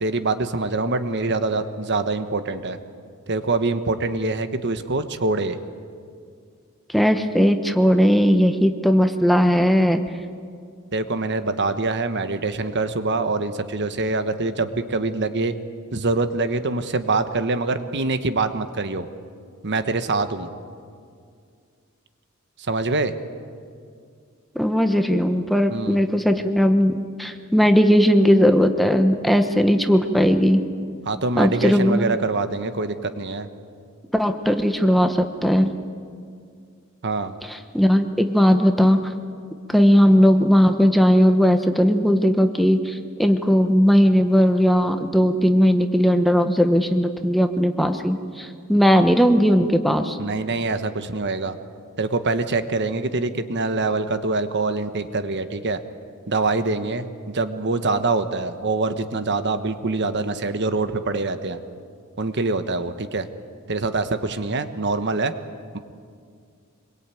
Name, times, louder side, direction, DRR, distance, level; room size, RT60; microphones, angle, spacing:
voice 1, 0.0-2.8 3.3-5.6 10.9-15.5 15.9-19.1 19.6-20.5 22.7-23.1 25.7-26.0 31.1-33.5 37.0-37.4 50.2-51.6 52.0-55.8 56.3-61.6 62.2-63.3 63.7-65.3 65.7-65.8, right 3 dB, 55° right, 10 dB, 1.2 m, -24 dB
voice 2, 6.9-10.0 24.5-30.6 31.4-32.1 34.1-35.7 37.4-39.1 39.7-50.2, equal, ahead, 6 dB, 1.1 m, -18 dB
26.0 x 22.5 x 9.2 m, 2.2 s
head